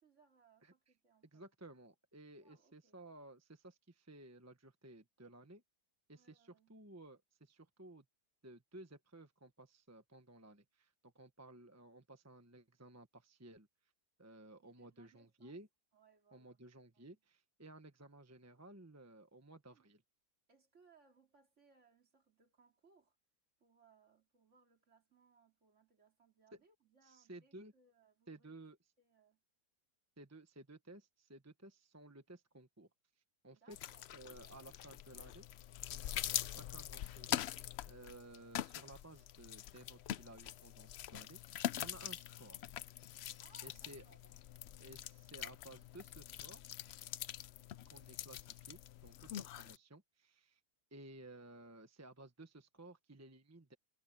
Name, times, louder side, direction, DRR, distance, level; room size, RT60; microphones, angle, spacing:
voice 1, 0.0-1.4 2.4-3.0 6.1-6.7 14.5-15.6 15.9-16.6 16.9-17.2 19.7-19.9 20.5-23.2 23.6-28.5 29.0-29.4 33.5-34.4 35.9-36.2 43.4-44.1, right 4 dB, 50° right, 2.8 m, -70 dB
voice 2, 1.3-5.6 6.1-8.0 8.4-13.7 14.2-15.7 16.3-20.0 26.5-26.6 27.0-27.7 28.3-28.8 30.2-32.9 33.4-33.8 34.1-35.5 36.6-42.6 43.6-44.0 44.8-46.6 47.9-50.6 50.9-53.7, right 2 dB, 10° right, 1.1 m, -56 dB
sound 1, 33.7-49.8, left 12 dB, 80° left, 0.5 m, -44 dB
omnidirectional pair, 1.7 m